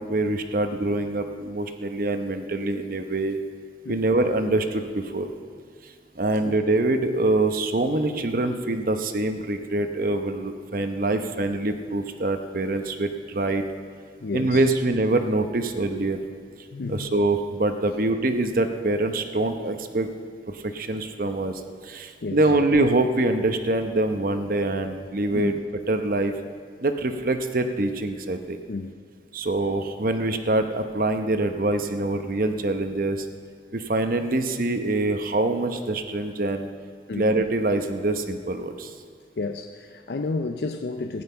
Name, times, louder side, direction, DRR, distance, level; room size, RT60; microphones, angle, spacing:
voice 1, 0.0-3.4 3.9-5.3 6.2-13.6 14.3-16.2 16.9-20.1 20.5-25.5 25.9-26.3 26.8-28.6 29.3-33.3 33.7-36.7 37.1-38.9, right 2 dB, 50° right, 7 dB, 0.9 m, -24 dB
voice 2, 14.2-14.6 16.7-17.1 22.2-22.4 25.3-25.6 28.7-28.9 37.1-37.3 39.4-41.2, left 3 dB, 70° left, 6 dB, 0.5 m, -31 dB
15.0 x 10.5 x 5.7 m, 2.1 s
head